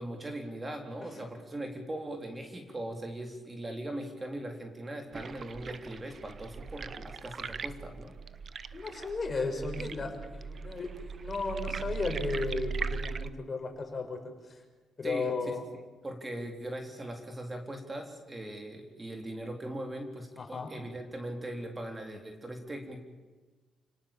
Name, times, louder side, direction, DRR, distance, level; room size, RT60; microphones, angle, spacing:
voice 1, 0.0-8.2 15.0-15.3 16.0-23.0, right 1 dB, 20° right, 4 dB, 3.8 m, -40 dB
sound 1, 5.1-13.3, right 6 dB, 45° right, 0.9 m, -39 dB
voice 2, 8.7-14.2 14.5-14.6 15.0-15.6 20.4-20.7, left 3 dB, 35° left, 4 dB, 6.1 m, -35 dB
29.5 x 18.5 x 7.4 m, 1.3 s
cardioid pair, 90°, 0 cm